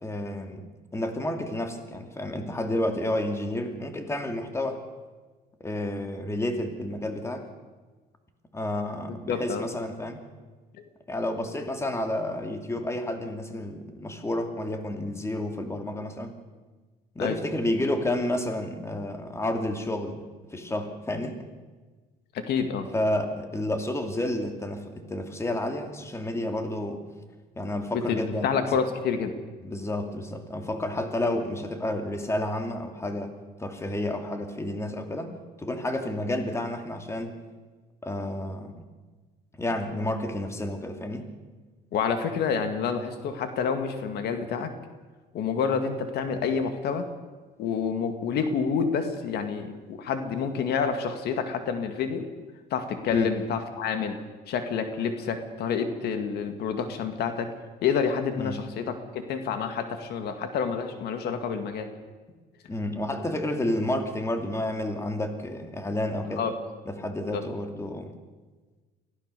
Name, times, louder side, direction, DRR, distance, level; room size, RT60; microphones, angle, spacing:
voice 1, 0.0-4.8 5.6-7.5 8.5-10.2 11.1-16.4 17.1-20.2 20.5-21.5 22.9-27.0 27.6-28.5 29.6-33.3 33.6-35.3 35.6-37.4 38.0-38.8 39.6-41.3 53.1-53.3 58.4-58.6 62.7-66.4 66.9-68.1, left 1 dB, 15° left, 5 dB, 2.6 m, -30 dB
voice 2, 9.3-9.7 17.2-17.4 22.3-22.9 27.9-29.3 41.9-44.7 45.3-47.1 47.6-52.3 52.7-54.2 54.5-57.5 57.8-62.0 66.4-66.5 67.3-67.4, left 6 dB, 70° left, 7 dB, 2.2 m, -28 dB
24.0 x 16.0 x 6.9 m, 1.3 s
cardioid pair, 110°, 17 cm